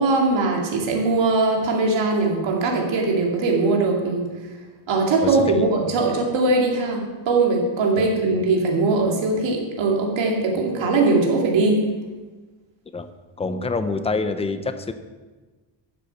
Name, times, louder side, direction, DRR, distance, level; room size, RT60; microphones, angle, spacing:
voice 1, 0.0-4.3 4.9-11.8, right 3 dB, 70° right, 0 dB, 2.5 m, -21 dB
voice 2, 5.2-5.7 8.0-8.1 12.9-13.1 13.4-14.9, left 3 dB, 15° left, 9 dB, 0.4 m, -26 dB
11.5 x 7.0 x 5.7 m, 1.3 s
cardioid pair, 165°, 47 cm